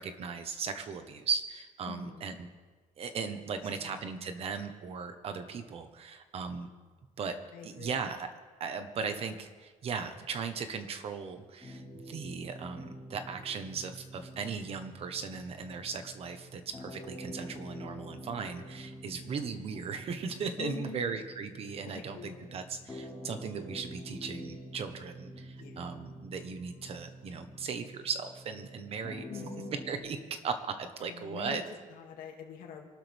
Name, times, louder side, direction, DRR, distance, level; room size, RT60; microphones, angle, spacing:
voice 1, 0.0-2.5 3.0-6.7 7.2-7.3 7.6-8.3 8.6-29.2 29.9-30.2 30.4-31.6, right 5 dB, 40° right, 8 dB, 1.2 m, -37 dB
voice 2, 1.9-2.4 3.7-4.1 7.5-8.0 20.6-21.2 21.9-22.6 25.6-26.1 29.3-29.7 31.0-32.9, left 7 dB, 80° left, 1 dB, 2.5 m, -45 dB
sound 1, 11.6-30.0, equal, 10° left, 4.7 m, -47 dB
25.0 x 12.5 x 3.5 m, 1.4 s
cardioid pair, 175°, 15 cm